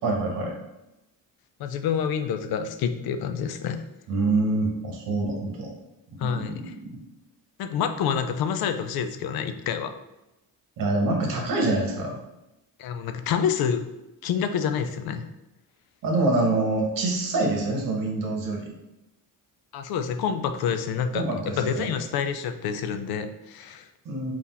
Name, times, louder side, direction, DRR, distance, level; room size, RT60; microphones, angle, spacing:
voice 1, 0.0-0.6 4.1-5.7 6.2-6.9 10.8-12.2 16.0-18.7 21.1-21.9 24.0-24.3, right 2 dB, 65° right, 1 dB, 1.1 m, -26 dB
voice 2, 1.6-3.8 6.2-6.7 7.6-9.9 12.8-13.8 14.2-15.2 19.7-21.2 21.6-23.9, left 7 dB, 80° left, 9 dB, 0.5 m, -27 dB
3.9 x 2.5 x 4.1 m, 0.95 s
cardioid pair, 165°, 36 cm